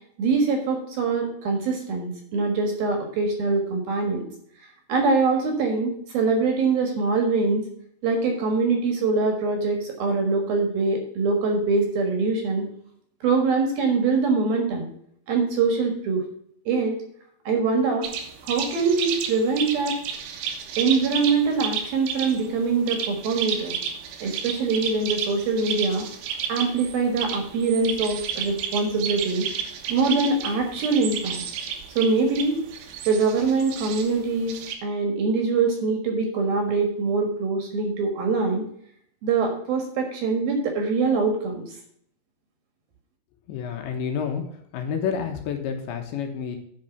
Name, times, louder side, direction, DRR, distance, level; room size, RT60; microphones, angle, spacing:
voice 1, 0.2-4.2 4.9-7.6 8.0-12.6 13.2-14.9 15.3-16.2 16.7-16.9 17.5-18.1 18.4-20.0 20.8-23.8 24.2-26.0 26.5-29.5 29.9-31.4 31.9-32.5 33.1-34.6 34.8-38.6 39.2-41.6, right 4 dB, 60° right, 3 dB, 2.9 m, -23 dB
sound 1, 18.0-34.8, right 8 dB, 80° right, 3.8 m, -32 dB
voice 2, 43.5-44.4 44.7-46.6, left 7 dB, 70° left, 4 dB, 3.2 m, -29 dB
9.4 x 5.9 x 5.8 m, 0.67 s
omnidirectional pair, 5.6 m